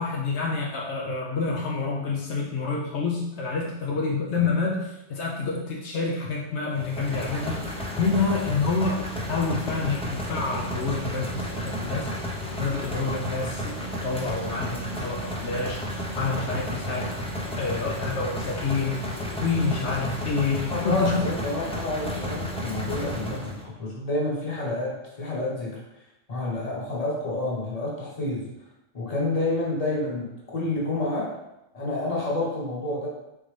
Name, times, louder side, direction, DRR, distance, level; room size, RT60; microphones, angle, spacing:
voice 1, 0.0-17.1 17.6-21.2, left 4 dB, 75° left, -2 dB, 0.9 m, -28 dB
sound 1, 6.8-23.6, equal, 10° left, 0.4 m, -32 dB
voice 2, 20.7-25.8 26.3-28.5 28.9-31.4 31.7-33.1, left 2 dB, 35° left, -4 dB, 1.1 m, -29 dB
3.9 x 3.7 x 3.2 m, 0.90 s
omnidirectional pair, 1.2 m